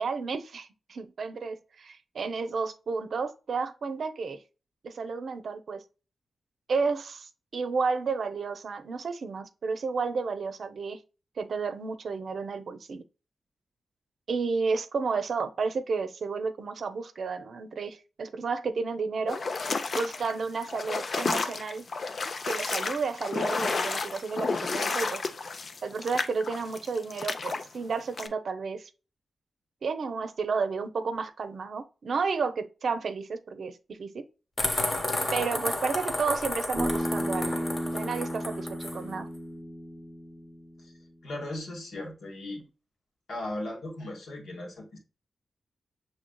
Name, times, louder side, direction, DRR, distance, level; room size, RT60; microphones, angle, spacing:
voice 1, 0.0-4.4 4.8-5.8 6.7-11.0 11.4-13.0 14.3-19.4 19.9-21.9 22.4-25.2 25.8-28.9 29.8-34.2 35.3-37.6 37.8-39.3, right 4 dB, 65° right, 0.6 m, -32 dB
sound 1, 19.3-27.6 28.2-28.3, left 4 dB, 50° left, 0.5 m, -31 dB
sound 2, 34.6-39.0, left 2 dB, 35° left, 1.1 m, -32 dB
Bass guitar, 36.8-41.0, equal, ahead, 0.7 m, -34 dB
voice 2, 41.2-42.6 43.3-45.0, left 1 dB, 80° left, 1.6 m, -37 dB
6.3 x 3.2 x 2.2 m
wide cardioid pair, 115°, 0 cm